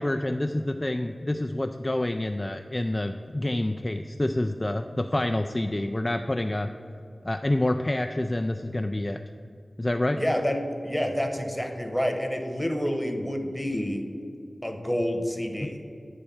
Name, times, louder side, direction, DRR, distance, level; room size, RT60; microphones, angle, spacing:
voice 1, 0.0-6.7 7.2-9.2 9.8-10.2 15.6-15.8, left 1 dB, 30° left, 6 dB, 0.3 m, -27 dB
voice 2, 10.2-14.0 14.6-15.8, equal, 5° left, 4 dB, 1.1 m, -28 dB
9.7 x 3.3 x 7.0 m, 2.5 s
cardioid pair, 40°, 0 cm